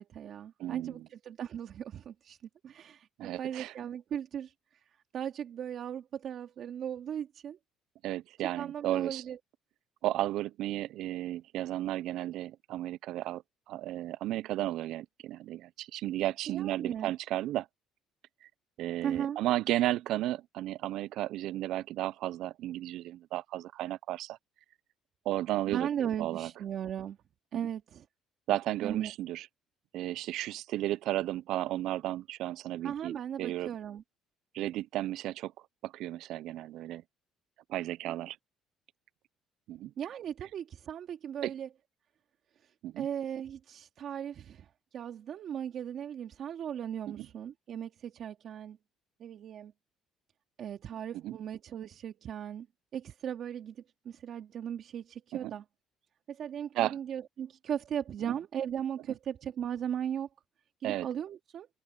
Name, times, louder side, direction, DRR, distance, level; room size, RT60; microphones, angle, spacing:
voice 1, 0.0-2.4 2.6-4.8 5.1-7.6 8.6-9.4 16.5-17.1 19.0-19.4 25.7-27.2 27.5-28.0 28.8-29.1 32.8-34.0 38.1-38.3 40.0-41.7 43.0-44.7 44.9-48.8 49.2-49.7 50.6-52.7 52.9-55.6 56.3-60.3 60.8-61.7, right 9 dB, 55° right, 2.2 m, -37 dB
voice 2, 0.6-1.1 3.2-3.7 8.0-9.2 10.0-13.4 13.7-17.7 18.4-18.5 18.8-24.4 25.3-26.5 28.5-29.5 29.9-33.7 34.5-35.5 35.8-37.0 37.7-38.4 39.7-39.9 41.4-41.5 42.8-43.1 47.2-47.3 51.2-51.3 55.3-55.5 56.7-57.0 58.2-58.3 60.8-61.1, right 14 dB, 70° right, 0.4 m, -34 dB
cardioid pair, 115°, 0 cm